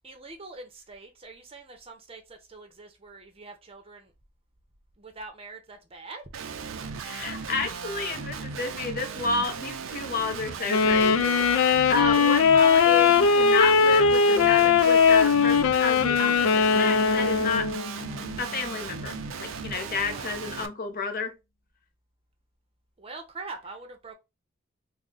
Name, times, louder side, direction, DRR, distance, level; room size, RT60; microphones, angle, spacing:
voice 1, 0.0-4.1 5.0-6.2 19.7-20.3 23.0-24.1, right 3 dB, 30° right, 0.7 m, -44 dB
Guitar, 6.3-20.7, right 5 dB, 80° right, 0.4 m, -37 dB
voice 2, 7.0-17.7 18.4-19.1 19.4-21.3, left 4 dB, 45° left, 0.6 m, -31 dB
Wind instrument woodwind instrument, 10.7-17.9, left 5 dB, 90° left, 0.4 m, -20 dB
Bass guitar, 16.7-20.5, equal, 65° left, 1.1 m, -40 dB
3.6 x 2.1 x 3.8 m
head